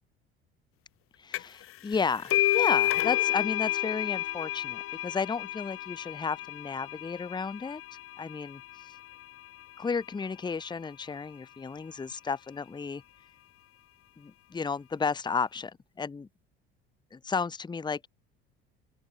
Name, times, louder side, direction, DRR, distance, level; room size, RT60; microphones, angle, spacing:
voice 1, 1.2-7.8 8.2-8.6 9.8-13.0 14.2-16.3 17.1-18.1, left 5 dB, 15° left, 0.9 m, -33 dB
sound 1, 1.3-1.6 1.9-9.2, left 15 dB, 45° left, 0.8 m, -30 dB
sound 2, 1.9-16.5, right 1 dB, 5° right, 7.2 m, -67 dB
open air
figure-of-eight pair, 65°, 32 cm